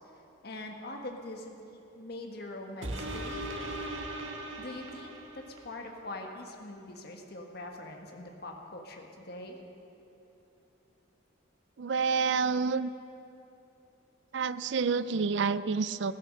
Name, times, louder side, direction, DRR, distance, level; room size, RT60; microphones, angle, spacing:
voice 1, 0.4-3.8 4.6-5.1 5.6-9.6, left 2 dB, 55° left, 2 dB, 1.5 m, -43 dB
sound 1, 2.8-5.7 6.3-6.4, right 1 dB, 90° right, 1.6 m, -38 dB
voice 2, 11.8-12.9 14.3-16.1, right 5 dB, 65° right, 16 dB, 0.4 m, -28 dB
15.5 x 13.5 x 6.5 m, 3.0 s
head